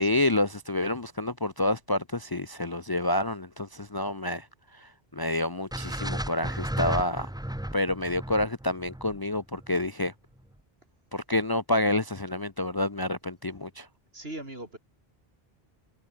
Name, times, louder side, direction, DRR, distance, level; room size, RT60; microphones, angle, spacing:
voice 1, 0.0-4.5 4.7-7.3 7.7-10.1 11.1-13.9, left 1 dB, 25° left, 0.7 m, -28 dB
sound 1, 5.7-9.9, right 1 dB, 5° right, 0.9 m, -34 dB
voice 2, 14.1-14.8, right 1 dB, 70° right, 6.5 m, -40 dB
omnidirectional pair, 1.0 m